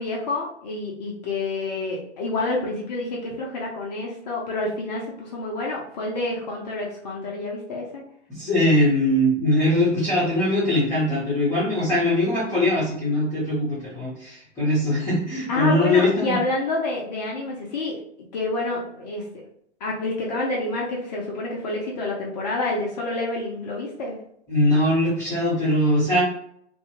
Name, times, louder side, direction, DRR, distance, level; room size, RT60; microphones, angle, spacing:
voice 1, 0.0-8.0 15.5-18.0 18.3-19.2 19.8-24.1, left 2 dB, 35° left, -2 dB, 0.6 m, -28 dB
voice 2, 8.3-16.4 24.5-26.2, left 1 dB, 10° left, -10 dB, 0.8 m, -21 dB
2.6 x 2.2 x 3.0 m, 0.70 s
hypercardioid pair, 130°, 37 cm